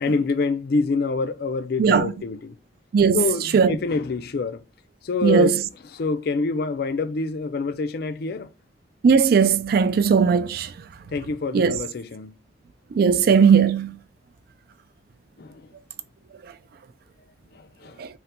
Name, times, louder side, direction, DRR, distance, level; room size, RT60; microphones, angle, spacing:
voice 1, 0.0-2.6 3.1-4.6 5.0-5.5 5.9-8.5 11.1-12.3 15.4-15.7 17.5-18.0, left 4 dB, 60° left, 0.4 m, -26 dB
voice 2, 1.8-2.1 2.9-3.2 3.5-3.8 5.2-5.6 9.0-10.7 11.5-11.8 12.9-14.0 18.0-18.1, right 6 dB, 55° right, 0.3 m, -18 dB
3.8 x 2.2 x 4.2 m
head